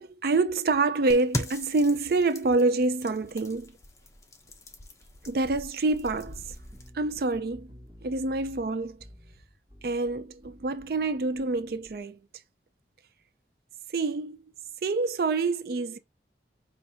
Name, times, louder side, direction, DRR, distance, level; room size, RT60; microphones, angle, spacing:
voice 1, 0.0-3.7 5.2-6.5 6.9-7.7 8.0-9.0 9.8-12.2 13.9-14.4 14.8-16.0, right 3 dB, 55° right, 0.4 m, -27 dB
sound 1, 1.1-6.9, left 1 dB, 15° left, 0.7 m, -40 dB
sound 2, 6.0-12.0, equal, 25° right, 1.5 m, -52 dB
5.4 x 2.6 x 2.7 m
head